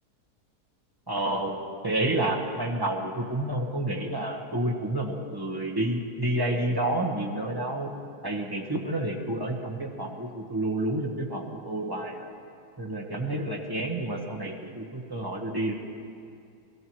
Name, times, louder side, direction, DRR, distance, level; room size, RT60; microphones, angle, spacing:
voice 1, 1.1-1.6 1.8-7.9 8.2-12.3 12.8-15.8, right 1 dB, 15° right, -1 dB, 1.1 m, -29 dB
22.0 x 14.5 x 3.1 m, 2.4 s
omnidirectional pair, 1.8 m